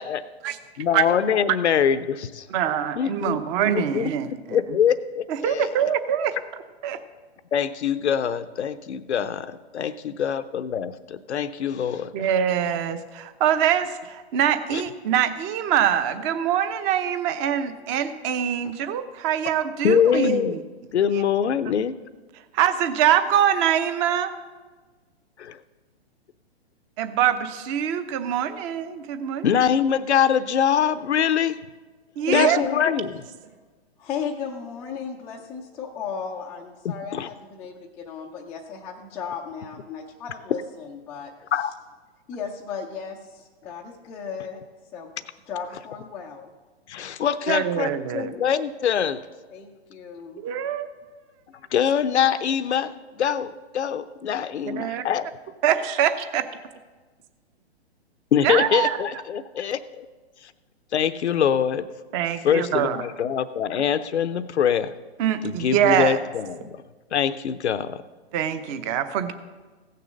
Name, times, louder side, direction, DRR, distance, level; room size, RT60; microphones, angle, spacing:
voice 1, 0.8-2.5 3.0-5.8 7.5-12.1 14.7-14.8 19.8-20.5 20.9-22.0 25.4-25.6 29.4-31.5 32.3-33.1 36.8-37.3 41.5-41.7 46.9-49.2 51.7-55.3 58.3-60.1 60.9-61.9 62.4-64.9 65.4-66.8 67.1-68.0, left 8 dB, 85° left, 12 dB, 0.7 m, -24 dB
voice 2, 2.5-4.6 5.3-6.3 6.8-7.0 12.1-20.6 21.1-21.2 22.5-24.3 27.0-29.6 32.2-32.6 47.5-48.3 50.4-50.9 54.7-55.0 55.6-56.5 58.4-58.9 62.1-63.0 65.2-66.2 68.3-69.3, right 9 dB, 30° right, 11 dB, 0.8 m, -24 dB
voice 3, 32.2-32.9 34.0-41.3 42.3-44.6 44.9-45.1 45.5-46.5 49.5-50.4, left 7 dB, 5° left, -5 dB, 0.3 m, -34 dB
15.5 x 6.8 x 6.3 m, 1.3 s
hypercardioid pair, 135°, 33 cm